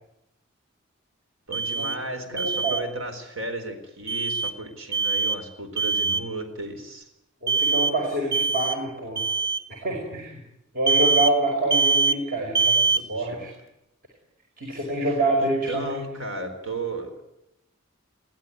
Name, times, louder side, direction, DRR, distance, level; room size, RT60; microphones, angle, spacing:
Alarm, 1.5-2.0 2.4-2.8 4.1-4.5 4.9-5.4 5.8-6.3 7.5-8.0 8.3-8.8 9.2-9.6 10.9-11.4 11.7-12.2 12.6-13.0, right 4 dB, 15° right, 1.2 m, -23 dB
voice 1, 1.5-7.1 12.9-13.4 15.4-17.3, right 2 dB, 75° right, 7 dB, 4.3 m, -34 dB
voice 2, 2.3-2.8 7.4-9.2 9.7-10.4 10.7-13.5 14.6-16.0, right 1 dB, 45° right, 0 dB, 5.5 m, -27 dB
22.0 x 17.0 x 9.4 m, 0.82 s
head